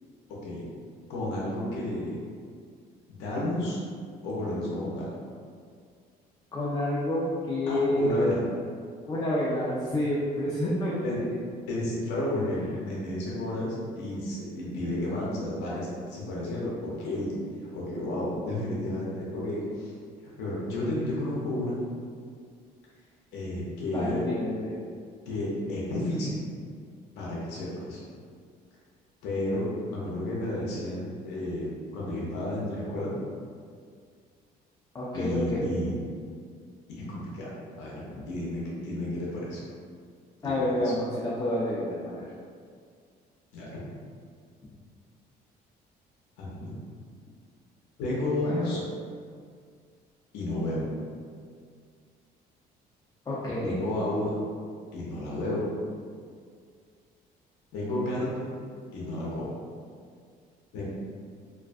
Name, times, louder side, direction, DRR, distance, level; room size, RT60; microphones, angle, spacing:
voice 1, 1.1-2.1 3.1-3.8 4.2-5.1 7.7-8.4 11.0-11.2 11.7-17.3 17.7-19.9 20.4-21.8 23.3-24.2 25.3-26.4 27.1-28.0 29.2-33.1 35.1-36.0 36.9-37.5 37.8-39.6 40.4-40.9 43.5-43.7 46.4-46.7 48.0-48.8 50.3-50.8 53.6-54.3 54.9-55.7 57.7-58.5 58.9-59.5 60.7-60.8, left 1 dB, 85° left, -5 dB, 0.6 m, -31 dB
voice 2, 6.5-8.3 9.1-11.0 23.9-24.7 34.9-35.8 38.1-38.3 40.4-42.3 48.3-48.7 53.3-53.8, left 1 dB, 20° left, -7 dB, 0.4 m, -29 dB
2.4 x 2.2 x 2.5 m, 2.1 s
cardioid pair, 110°, 17 cm